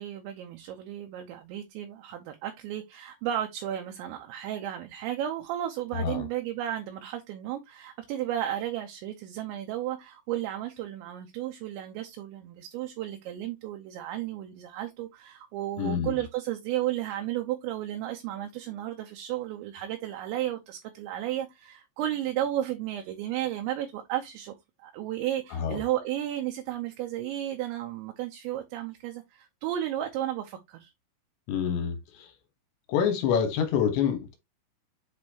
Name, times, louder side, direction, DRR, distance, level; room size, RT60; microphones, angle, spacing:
voice 1, 0.0-24.5 24.8-30.9, right 12 dB, 80° right, 2.7 m, -33 dB
voice 2, 5.9-6.2 15.8-16.1 25.5-25.8 31.5-32.3 32.9-34.4, left 7 dB, 70° left, 3.2 m, -27 dB
8.1 x 4.2 x 2.9 m
omnidirectional pair, 6.0 m